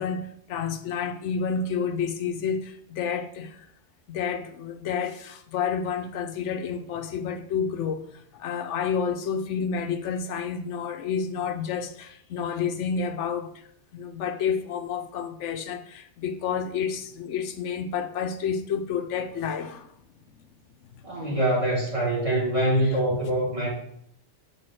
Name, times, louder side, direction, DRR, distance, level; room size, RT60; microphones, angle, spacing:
voice 1, 0.0-3.7 4.1-13.5 13.9-19.9 22.7-23.2, left 6 dB, 80° left, 0.9 m, -30 dB
voice 2, 21.0-23.7, right 1 dB, 30° right, 2.7 m, -24 dB
4.9 x 4.7 x 6.1 m
omnidirectional pair, 1.2 m